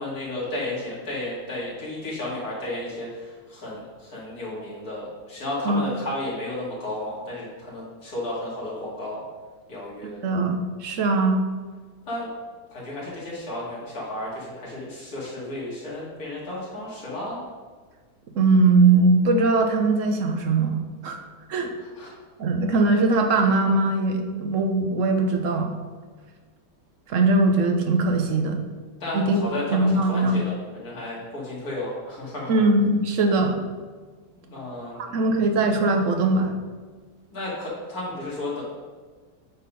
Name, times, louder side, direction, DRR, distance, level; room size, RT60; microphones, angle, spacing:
voice 1, 0.0-9.2 9.7-10.2 12.1-12.3 12.7-17.4 22.0-22.1 29.0-32.5 34.4-35.4 37.3-38.6, left 1 dB, 55° left, -6 dB, 2.9 m, -33 dB
voice 2, 10.0-11.4 18.3-21.2 21.5-21.7 22.4-25.7 27.1-28.6 29.1-29.4 29.7-30.4 32.5-33.6 35.0-36.5, right 3 dB, 55° right, 4 dB, 1.0 m, -21 dB
8.4 x 4.2 x 5.2 m, 1.5 s
omnidirectional pair, 1.9 m